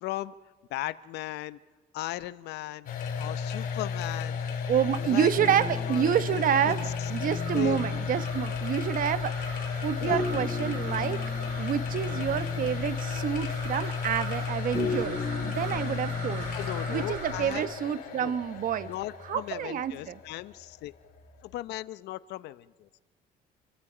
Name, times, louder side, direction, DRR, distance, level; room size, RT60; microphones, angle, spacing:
voice 1, 0.0-0.3 0.7-1.6 1.9-2.9 3.2-4.5 5.0-5.3 5.8-7.1 7.5-7.8 10.0-10.2 16.5-17.7 18.1-18.4 18.8-20.9 21.4-22.9, left 16 dB, 85° left, 16 dB, 0.7 m, -37 dB
sound 1, 2.9-21.6, left 6 dB, 55° left, 3.3 m, -34 dB
voice 2, 4.7-11.2 11.6-16.5 16.9-18.9 19.3-20.1, right 9 dB, 55° right, 14 dB, 1.0 m, -28 dB
sound 2, 5.3-8.5 10.1-13.0 14.7-16.9, left 4 dB, 20° left, 6.7 m, -38 dB
sound 3, 6.6-17.6, right 3 dB, 80° right, 7.9 m, -42 dB
28.0 x 23.0 x 5.0 m, 1.4 s
cardioid pair, 110°, 17 cm